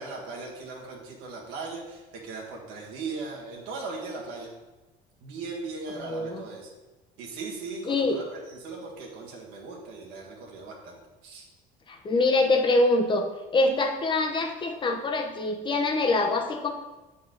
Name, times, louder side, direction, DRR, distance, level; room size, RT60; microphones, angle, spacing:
voice 1, 0.0-4.5 5.2-6.7 7.2-11.5, right 3 dB, 85° right, -2 dB, 1.6 m, -38 dB
voice 2, 6.0-6.4 7.9-8.2 11.9-13.3 13.5-16.7, left 2 dB, 30° left, 3 dB, 0.8 m, -24 dB
7.6 x 4.2 x 3.9 m, 1.1 s
cardioid pair, 115°, 17 cm